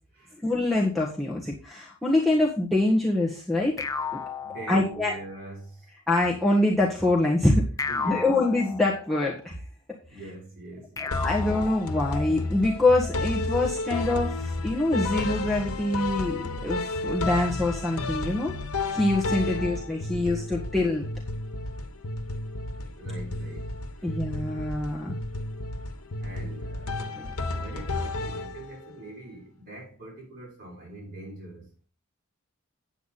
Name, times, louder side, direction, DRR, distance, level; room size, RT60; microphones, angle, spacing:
voice 1, 0.4-3.8 4.7-5.1 6.1-7.6 8.1-9.6 11.2-18.5 18.9-21.0 24.0-25.2 27.2-27.3, left 2 dB, ahead, 1.4 m, -25 dB
sound 1, 3.8-5.4 7.8-9.4 11.0-12.5, left 5 dB, 15° left, 0.5 m, -34 dB
voice 2, 4.4-5.9 7.9-8.4 10.1-11.3 19.4-19.8 22.9-23.7 24.0-24.2 26.2-27.0 27.5-31.7, right 2 dB, 40° right, 6.1 m, -43 dB
sound 2, 11.1-28.9, left 2 dB, 90° left, 1.1 m, -32 dB
9.1 x 8.3 x 4.1 m
head